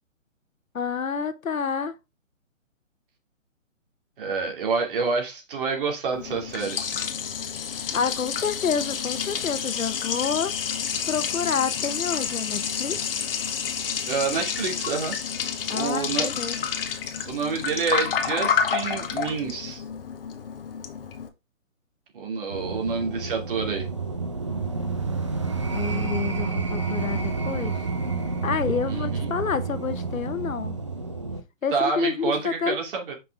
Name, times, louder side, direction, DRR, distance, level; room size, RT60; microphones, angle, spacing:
voice 1, 0.7-1.9 7.9-10.5 11.1-13.0 15.7-16.6 25.7-27.8 28.4-30.8 31.6-32.8, left 6 dB, 90° left, 1.1 m, -28 dB
voice 2, 4.2-6.9 14.1-15.1 15.7-16.3 17.3-19.8 22.1-23.9 28.8-29.3 31.7-33.1, right 5 dB, 40° right, 2.7 m, -28 dB
Liquid, 6.1-21.3, left 7 dB, 45° left, 1.0 m, -29 dB
sound 1, 22.5-31.4, right 4 dB, 25° right, 0.4 m, -29 dB
5.7 x 5.4 x 3.3 m
hypercardioid pair, 155°, 39 cm